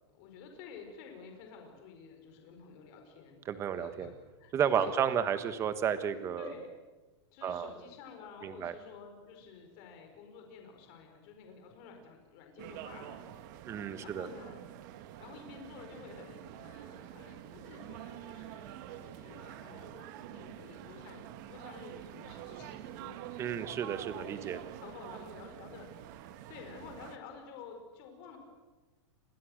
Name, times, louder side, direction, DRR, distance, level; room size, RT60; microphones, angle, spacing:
voice 1, 0.1-3.4 3.7-4.1 4.4-4.9 6.1-6.7 7.3-13.6 14.0-14.6 14.9-23.2 24.1-25.9 26.2-28.4, left 6 dB, 40° left, 4 dB, 4.9 m, -51 dB
voice 2, 3.5-4.1 4.5-6.5 7.4-7.7 8.4-8.7 13.6-14.3 23.4-24.6, right 8 dB, 20° right, 11 dB, 1.3 m, -32 dB
sound 1, 12.6-27.2, right 12 dB, 40° right, 1.5 m, -47 dB
29.0 x 22.0 x 6.6 m, 1.2 s
supercardioid pair, 165°, 15 cm